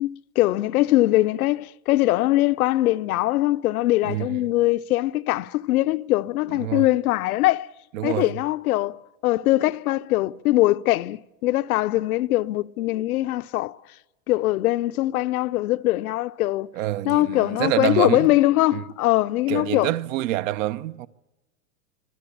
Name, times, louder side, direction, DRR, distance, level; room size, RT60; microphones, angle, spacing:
voice 1, 0.0-7.7 8.0-9.0 9.2-13.8 14.3-16.7 17.0-19.9, left 17 dB, 70° left, 0.8 m, -22 dB
voice 2, 4.0-4.4 6.6-6.9 7.9-8.3 16.7-18.3 18.7-18.8 19.5-21.1, right 14 dB, 55° right, 1.0 m, -26 dB
25.5 x 18.0 x 8.6 m
supercardioid pair, 140°, 45 cm